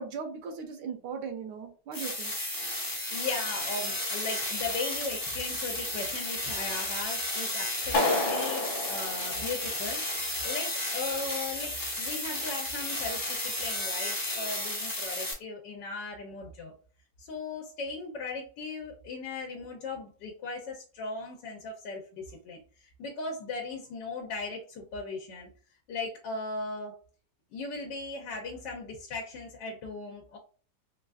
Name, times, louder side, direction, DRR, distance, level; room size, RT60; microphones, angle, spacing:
voice 1, 0.0-2.3, right 5 dB, 75° right, 5 dB, 1.2 m, -38 dB
sound 1, 1.9-15.3, left 1 dB, 25° left, 0.5 m, -33 dB
voice 2, 3.1-16.7 17.2-25.5 25.9-27.0 27.5-30.4, left 3 dB, 85° left, 1 dB, 1.3 m, -38 dB
Clapping, 7.9-10.0, left 2 dB, 55° left, 1.5 m, -30 dB
4.0 x 2.3 x 2.3 m, 0.39 s
omnidirectional pair, 1.9 m